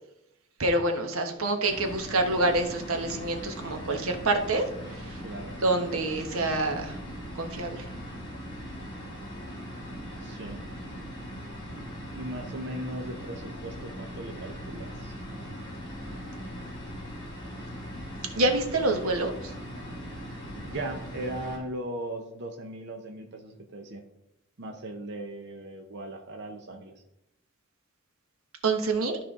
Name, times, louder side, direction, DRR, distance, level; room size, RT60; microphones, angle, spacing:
voice 1, 0.6-5.2 5.6-7.0 7.3-7.9 18.4-19.5 28.6-29.2, right 2 dB, 80° right, 5 dB, 1.2 m, -27 dB
sound 1, 1.6-21.6, equal, 20° left, 3.3 m, -40 dB
voice 2, 5.2-5.6 10.2-10.6 12.2-15.1 20.6-24.0 24.6-26.9, right 1 dB, 55° right, 3 dB, 0.8 m, -38 dB
13.0 x 4.4 x 3.7 m, 0.85 s
head